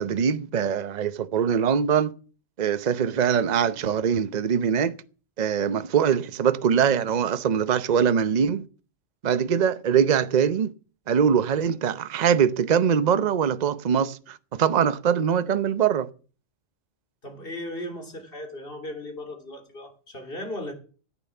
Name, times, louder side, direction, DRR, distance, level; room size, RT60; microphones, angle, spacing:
voice 1, 0.0-2.1 2.6-4.9 5.4-8.7 9.2-10.7 11.1-16.1, right 7 dB, 40° right, 0.7 m, -22 dB
voice 2, 17.2-20.7, left 1 dB, 45° left, 3.3 m, -36 dB
14.0 x 9.0 x 7.0 m
omnidirectional pair, 1.3 m